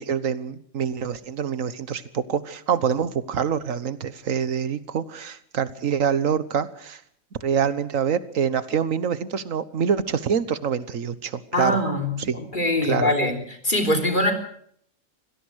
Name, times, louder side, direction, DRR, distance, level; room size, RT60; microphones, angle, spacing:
voice 1, 0.0-7.0 7.4-11.8 12.2-12.4 12.8-13.1, right 7 dB, 80° right, 15 dB, 1.6 m, -25 dB
voice 2, 11.5-13.4 13.6-14.3, left 1 dB, 40° left, 4 dB, 3.7 m, -23 dB
25.0 x 17.5 x 6.4 m, 0.64 s
omnidirectional pair, 1.3 m